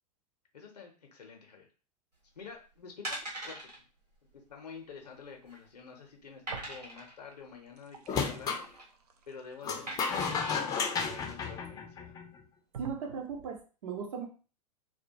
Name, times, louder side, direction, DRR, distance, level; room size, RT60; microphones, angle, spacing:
voice 1, 0.5-1.7 2.4-3.2 3.4-3.7 4.3-8.7 9.3-12.2, left 5 dB, 80° left, 3 dB, 0.5 m, -49 dB
sound 1, 2.4-2.6 3.0-3.8 4.1-4.3 4.5-4.6 5.2-5.7 6.5-7.2 8.5-8.9 9.9-10.6 11.2-11.3, right 1 dB, 90° right, 1.0 m, -41 dB
sound 2, 6.5-7.3 7.6-11.5 12.1-12.2 12.7-13.6, right 7 dB, 70° right, 0.4 m, -49 dB
sound 3, 8.1-8.7 9.6-12.4, left 5 dB, 20° left, 0.4 m, -33 dB
voice 2, 12.8-14.3, right 6 dB, 55° right, 2 dB, 0.8 m, -38 dB
2.2 x 2.1 x 2.6 m, 0.36 s
figure-of-eight pair, 95°, 20 cm